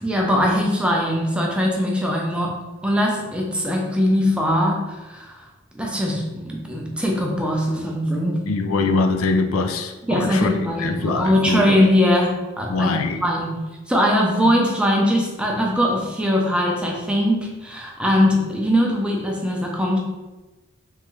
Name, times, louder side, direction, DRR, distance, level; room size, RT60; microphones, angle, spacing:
voice 1, 0.0-2.5 2.8-5.4 5.7-8.4 10.1-13.0 13.2-13.6 13.9-20.0, equal, 5° right, -1 dB, 0.6 m, -21 dB
voice 2, 8.5-11.7 12.7-13.2, left 3 dB, 75° left, 6 dB, 0.4 m, -23 dB
3.6 x 3.2 x 3.1 m, 1.1 s
head